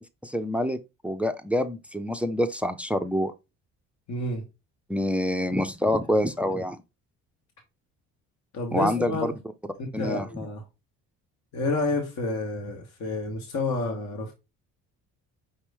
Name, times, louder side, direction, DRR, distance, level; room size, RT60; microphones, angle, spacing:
voice 1, 0.2-0.8 1.0-3.3 4.9-6.8 8.7-9.3 9.9-10.3, equal, 5° right, 0.4 m, -26 dB
voice 2, 4.1-4.4 8.5-9.3 9.8-10.6 11.5-14.3, left 3 dB, 55° left, 1.3 m, -29 dB
5.4 x 2.9 x 3.4 m
cardioid pair, 90°, 33 cm